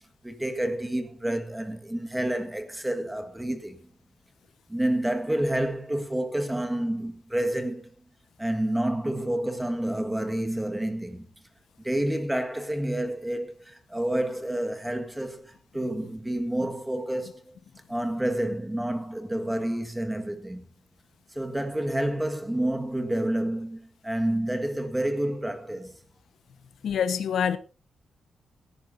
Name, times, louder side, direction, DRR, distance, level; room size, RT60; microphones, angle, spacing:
voice 1, 0.2-3.9 4.7-7.9 8.4-11.3 11.8-17.5 17.9-20.7 21.3-26.0, right 1 dB, 5° right, 1.6 m, -29 dB
voice 2, 26.8-27.6, left 8 dB, 75° left, 1.2 m, -25 dB
17.0 x 15.0 x 2.7 m
wide cardioid pair, 155°, 0 cm